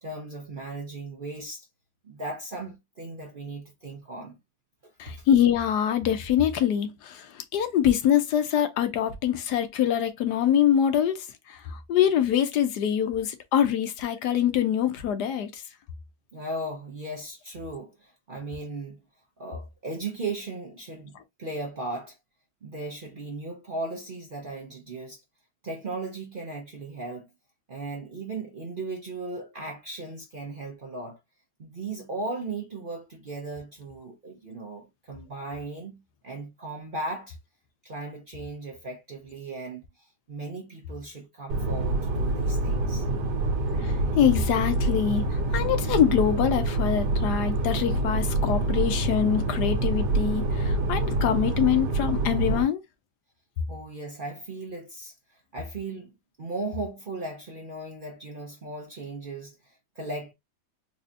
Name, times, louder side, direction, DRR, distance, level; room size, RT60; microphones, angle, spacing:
voice 1, 0.0-1.7 2.0-4.4 4.8-5.3 16.3-19.0 19.4-22.2 22.6-25.2 25.6-27.3 27.7-31.2 31.6-37.4 37.8-43.1 53.7-56.1 56.4-60.3, right 2 dB, 45° right, 0.7 m, -37 dB
voice 2, 5.0-15.6 43.8-52.8, left 9 dB, 80° left, 1.2 m, -24 dB
sound 1, 41.5-52.6, right 2 dB, 80° right, 1.4 m, -26 dB
4.2 x 2.7 x 2.5 m
omnidirectional pair, 1.8 m